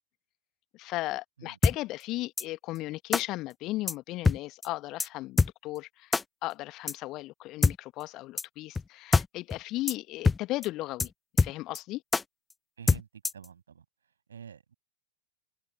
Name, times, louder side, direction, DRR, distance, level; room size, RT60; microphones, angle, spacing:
voice 1, 0.7-11.1 11.4-12.0, left 18 dB, 40° left, 1.4 m, -36 dB
sound 1, 1.6-1.8 2.4-2.5 3.1-3.2 3.9-4.0 4.2-4.4 4.6-4.7 5.0-5.1 5.4-5.5 6.1-6.2 6.9-7.0 7.6-7.8 8.4-8.5 8.8-8.9 9.1-9.3 9.5-9.6 9.9-10.0 10.2-10.4 10.6-10.7 11.0-11.1 11.4-11.8 12.1-12.2 12.9-13.5, left 4 dB, 10° left, 0.6 m, -24 dB
voice 2, 12.8-13.1 13.3-13.8 14.3-14.7, right 7 dB, 70° right, 7.7 m, -47 dB
figure-of-eight pair, 90°, 0 cm